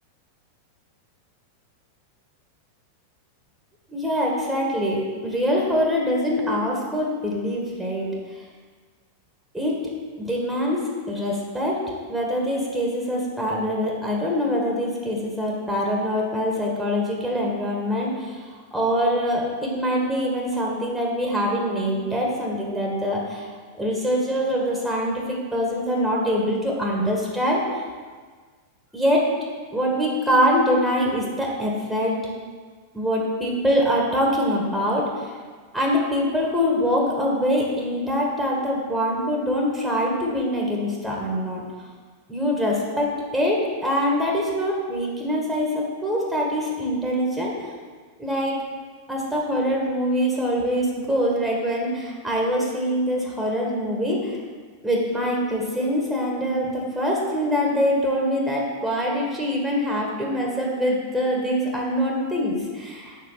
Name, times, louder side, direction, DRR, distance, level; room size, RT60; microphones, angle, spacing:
voice 1, 3.9-8.1 9.5-9.8 10.2-11.8 12.1-18.5 18.7-23.5 23.7-27.6 28.9-29.3 29.7-32.2 32.9-35.4 35.7-41.6 42.3-47.5 48.2-48.6 49.1-54.4 54.8-63.2, equal, 5° right, -3 dB, 1.8 m, -24 dB
7.3 x 5.7 x 5.7 m, 1.5 s
figure-of-eight pair, 90°, 0 cm